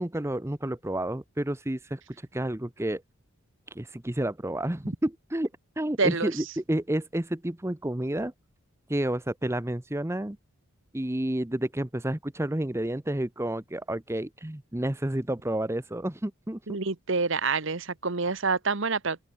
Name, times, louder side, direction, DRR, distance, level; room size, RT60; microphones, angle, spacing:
voice 1, 0.0-2.0 2.3-3.0 3.7-5.5 5.8-8.3 8.9-10.4 10.9-16.8, right 1 dB, 10° right, 0.7 m, -30 dB
voice 2, 6.0-6.3 16.7-19.2, right 4 dB, 55° right, 1.2 m, -27 dB
open air
head